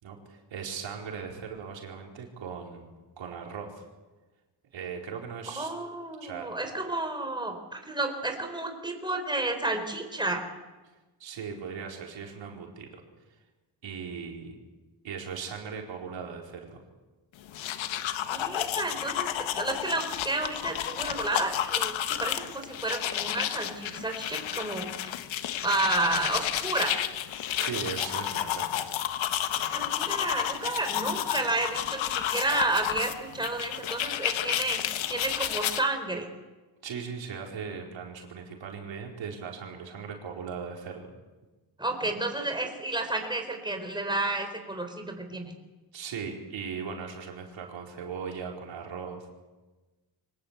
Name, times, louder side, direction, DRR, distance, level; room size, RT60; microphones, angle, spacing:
voice 1, 0.0-3.8 4.7-5.7 6.2-6.5 11.2-13.0 13.8-14.6 15.0-16.8 27.6-29.0 36.8-41.1 45.9-49.3, right 6 dB, 75° right, 0 dB, 4.7 m, -38 dB
voice 2, 5.6-10.5 18.3-25.1 25.6-27.0 29.7-34.8 35.1-36.3 41.8-45.5, right 2 dB, 10° right, 4 dB, 4.4 m, -31 dB
sound 1, 17.4-35.8, left 11 dB, 85° left, 1.4 m, -31 dB
24.5 x 18.5 x 8.3 m, 1.2 s
cardioid pair, 90°, 45 cm